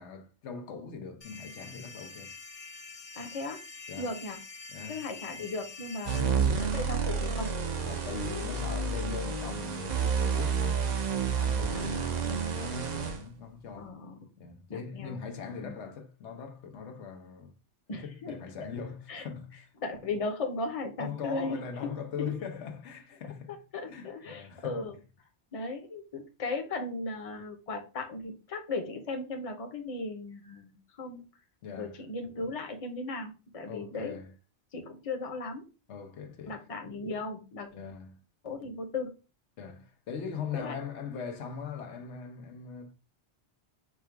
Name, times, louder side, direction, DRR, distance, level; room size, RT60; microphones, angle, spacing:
voice 1, 0.0-2.4 3.9-4.1 4.7-5.0 6.1-6.5 7.8-13.9 14.4-17.5 17.9-19.7 21.0-23.6 23.9-24.8 31.6-32.0 33.7-34.3 35.9-36.6 37.7-38.2 39.6-42.9, left 6 dB, 90° left, 1.1 m, -41 dB
sound 1, 1.2-6.2, left 4 dB, 50° left, 0.4 m, -46 dB
voice 2, 3.1-3.6 4.0-4.4 4.9-7.5 11.7-12.1 13.8-14.3 14.7-15.2 15.6-15.8 17.9-18.4 19.1-19.3 19.8-21.6 22.2-22.3 23.7-25.0 25.5-31.3 31.8-34.2 34.7-35.6 36.5-37.7 38.4-39.1 40.5-40.8, left 3 dB, 35° left, 0.8 m, -37 dB
sound 2, 6.1-13.2, right 5 dB, 45° right, 0.7 m, -30 dB
4.8 x 2.3 x 4.5 m
omnidirectional pair, 1.1 m